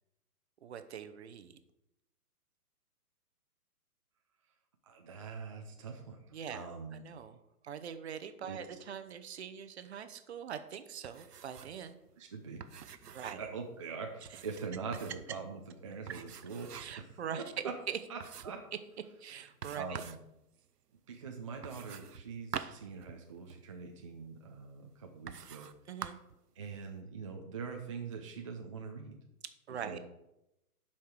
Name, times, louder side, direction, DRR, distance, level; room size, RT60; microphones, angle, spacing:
voice 1, 0.6-1.6 6.3-6.6 7.0-7.4 7.6-12.0 13.1-13.4 16.7-18.0 19.2-20.0 25.9-26.2 29.7-30.0, right 8 dB, 45° right, 10 dB, 0.8 m, -42 dB
voice 2, 4.8-7.0 8.4-8.6 12.2-12.8 13.4-17.2 17.6-17.7 18.1-18.6 19.7-20.2 21.1-26.1 26.5-29.2 29.7-30.0, right 5 dB, 20° right, 2 dB, 0.5 m, -43 dB
sound 1, 11.0-11.8 12.1-12.2 12.6-13.6 14.2-15.3 16.1-17.1 17.5-17.6 18.2-18.7 19.6-20.3 21.6-23.6 24.4-24.5 25.3-25.8 26.0-26.4, right 7 dB, 80° right, 0.7 m, -46 dB
7.6 x 5.8 x 6.4 m, 0.88 s
figure-of-eight pair, 125°, 46 cm